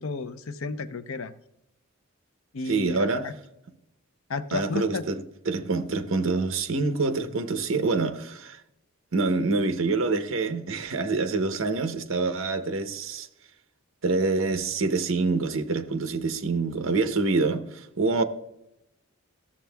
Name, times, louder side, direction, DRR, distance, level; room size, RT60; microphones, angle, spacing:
voice 1, 0.0-1.3 2.5-3.3 4.3-5.0, left 3 dB, 70° left, 0.6 m, -32 dB
voice 2, 2.7-3.3 4.5-8.6 9.1-13.3 14.0-18.2, right 3 dB, 65° right, 0.8 m, -26 dB
13.5 x 7.2 x 2.3 m
head